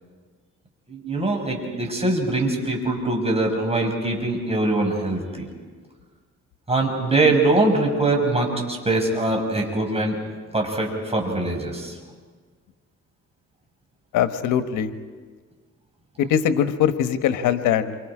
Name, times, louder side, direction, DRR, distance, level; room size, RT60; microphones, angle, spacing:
voice 1, 0.9-5.4 6.7-12.0, right 2 dB, 20° right, 1 dB, 6.0 m, -23 dB
voice 2, 14.1-14.9 16.2-18.0, left 9 dB, 90° left, 9 dB, 1.3 m, -21 dB
28.0 x 25.5 x 5.0 m, 1.5 s
cardioid pair, 90°, 30 cm